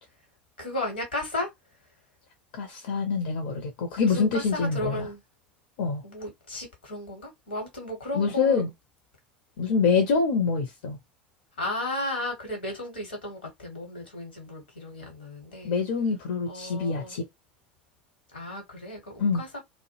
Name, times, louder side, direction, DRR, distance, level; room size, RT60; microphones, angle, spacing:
voice 1, 0.6-1.5 4.0-5.2 6.0-8.6 11.6-15.7 16.5-17.1 18.3-19.6, left 1 dB, 80° left, 1.0 m, -34 dB
voice 2, 2.5-5.1 5.8-6.0 8.1-8.7 9.6-11.0 15.6-17.3 19.2-19.4, left 5 dB, 65° left, 0.5 m, -25 dB
2.2 x 2.0 x 2.9 m
figure-of-eight pair, 70°, 5 cm